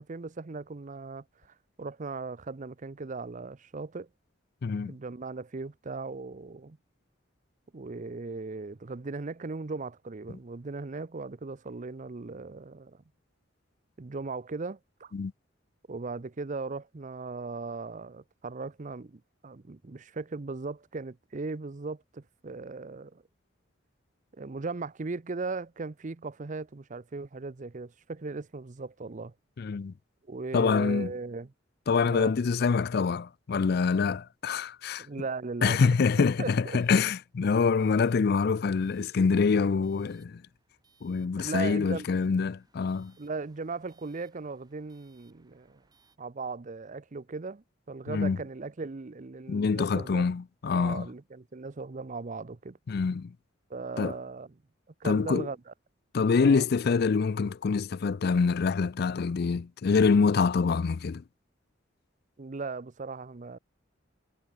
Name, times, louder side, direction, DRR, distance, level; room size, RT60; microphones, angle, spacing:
voice 1, 0.0-4.1 4.8-6.8 7.7-13.0 14.0-15.1 15.9-23.2 24.3-29.3 30.3-31.5 32.0-32.3 35.0-35.8 36.2-36.8 41.4-42.1 43.2-45.8 46.2-50.2 50.7-52.8 53.7-54.5 55.0-55.7 56.4-56.7 62.4-63.6, right 3 dB, 40° right, 0.6 m, -38 dB
voice 2, 4.6-4.9 15.1-15.3 29.6-29.9 30.5-31.1 31.9-35.1 35.6-40.4 41.0-43.1 48.1-48.4 49.5-51.1 52.9-53.3 54.0-54.1 55.0-55.5 56.1-61.2, left 5 dB, 55° left, 0.4 m, -25 dB
sound 1, 36.2-46.2, right 3 dB, 20° right, 7.4 m, -68 dB
head